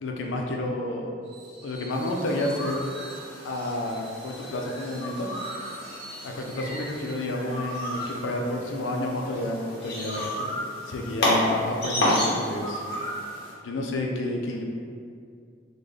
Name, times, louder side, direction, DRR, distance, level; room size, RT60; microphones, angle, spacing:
voice 1, 0.0-1.1 1.6-2.8 3.4-5.3 6.2-10.5 10.9-12.8 13.6-14.6, left 1 dB, 85° left, 1 dB, 0.5 m, -30 dB
Screech, 1.2-7.3, right 2 dB, 85° right, 0.9 m, -46 dB
sound 1, 1.9-13.5, left 1 dB, 60° left, 1.0 m, -31 dB
3.7 x 2.2 x 3.2 m, 2.3 s
head